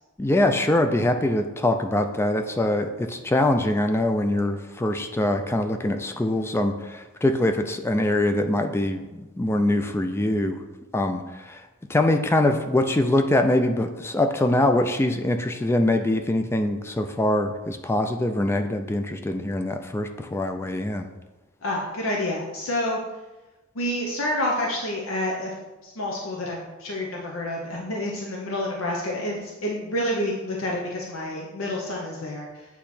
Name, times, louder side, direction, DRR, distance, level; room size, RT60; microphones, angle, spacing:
voice 1, 0.2-10.6 10.9-11.6 11.9-21.1, left 1 dB, 10° left, 6 dB, 0.3 m, -23 dB
voice 2, 21.6-23.0 23.7-25.5 25.8-32.7, left 1 dB, 75° left, -2 dB, 0.8 m, -28 dB
8.3 x 2.9 x 4.2 m, 1.1 s
head